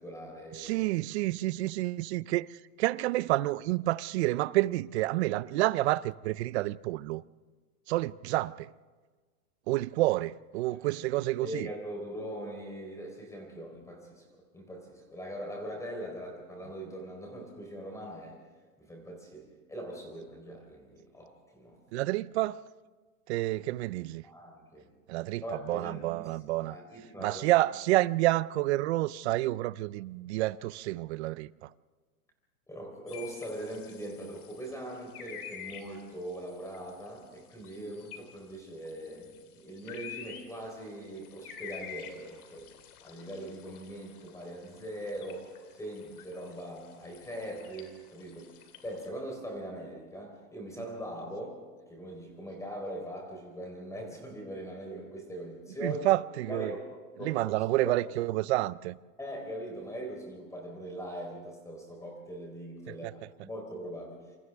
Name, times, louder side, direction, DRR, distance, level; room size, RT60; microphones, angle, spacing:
voice 1, 0.0-0.9 10.7-10.8 11.4-14.2 14.5-18.4 18.8-21.8 23.4-23.5 24.2-24.9 25.4-27.5 32.7-42.7 43.0-48.6 48.8-51.6 51.9-56.1 56.5-56.8 57.2-58.1 59.2-64.3, right 1 dB, 5° left, 3.9 m, -41 dB
voice 2, 0.5-7.2 7.9-8.7 9.7-11.7 21.9-22.6 23.3-24.2 25.1-26.8 27.2-31.7 55.8-56.7 57.2-59.0 62.9-63.1, right 17 dB, 50° right, 0.5 m, -29 dB
sound 1, 33.1-49.1, left 8 dB, 70° left, 3.4 m, -50 dB
27.5 x 26.5 x 3.5 m
supercardioid pair, 140°, 45 cm